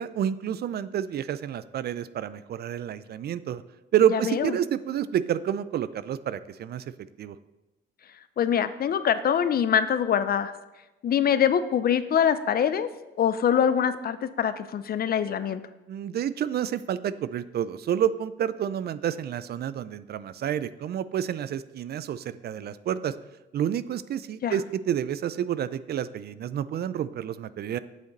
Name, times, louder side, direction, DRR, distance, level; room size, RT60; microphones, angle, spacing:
voice 1, 0.0-3.6 3.9-6.9 7.2-7.4 15.9-23.1 23.5-27.8, right 9 dB, 55° right, 15 dB, 0.4 m, -29 dB
voice 2, 4.1-4.5 8.4-10.5 11.0-12.9 13.2-15.6 24.4-24.5, left 8 dB, 50° left, 12 dB, 0.5 m, -24 dB
8.3 x 6.4 x 4.0 m, 1.0 s
cardioid pair, 90°, 20 cm